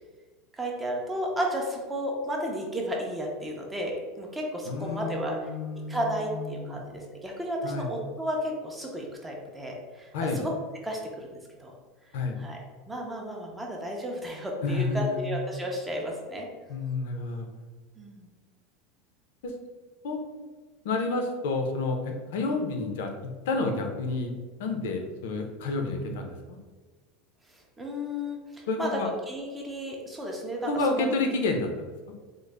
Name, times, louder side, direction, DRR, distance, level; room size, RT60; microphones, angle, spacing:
voice 1, 0.5-5.5 5.9-10.5 10.8-11.7 12.4-16.5 18.0-18.3 27.5-29.0 29.3-31.1, equal, 5° right, -1 dB, 0.4 m, -33 dB
voice 2, 4.7-6.8 7.6-7.9 10.1-10.4 12.1-12.4 14.6-15.3 16.7-17.5 19.4-19.5 20.0-20.4 20.8-24.3 24.6-26.6 28.7-29.1 30.6-31.9, left 3 dB, 75° left, 4 dB, 0.5 m, -30 dB
3.8 x 2.0 x 3.2 m, 1.4 s
supercardioid pair, 175°, 0 cm